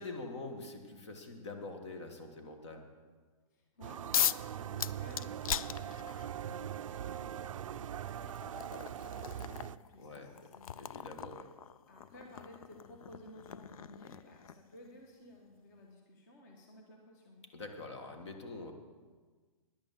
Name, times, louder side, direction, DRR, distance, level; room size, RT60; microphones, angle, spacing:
voice 1, 0.0-2.9 10.0-10.5 10.8-11.5 17.5-18.7, left 3 dB, 50° left, 5 dB, 1.6 m, -45 dB
voice 2, 3.5-11.5 11.9-17.4, left 1 dB, 30° left, 2 dB, 1.3 m, -56 dB
sound 1, 3.8-9.8, right 10 dB, 65° right, 0.4 m, -41 dB
sound 2, 4.1-4.5 4.8-6.4 7.5-7.6 8.1-14.7, left 9 dB, 75° left, 0.4 m, -38 dB
10.5 x 8.9 x 7.3 m, 1.4 s
hypercardioid pair, 175°, 18 cm